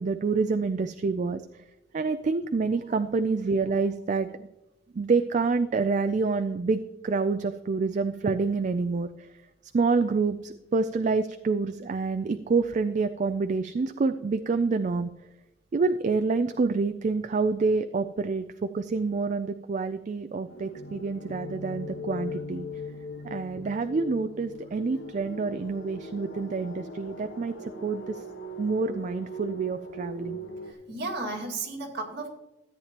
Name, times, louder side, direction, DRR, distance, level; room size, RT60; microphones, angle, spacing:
voice 1, 0.0-1.4 1.9-4.5 4.9-9.3 9.7-15.1 15.7-22.6 23.2-28.2 28.6-30.4, right 4 dB, 40° right, 10 dB, 0.3 m, -27 dB
sound 1, 20.5-30.7, left 1 dB, 75° left, 1.4 m, -40 dB
voice 2, 30.6-32.3, right 3 dB, 55° right, -2 dB, 2.1 m, -34 dB
13.5 x 8.9 x 2.9 m, 0.95 s
head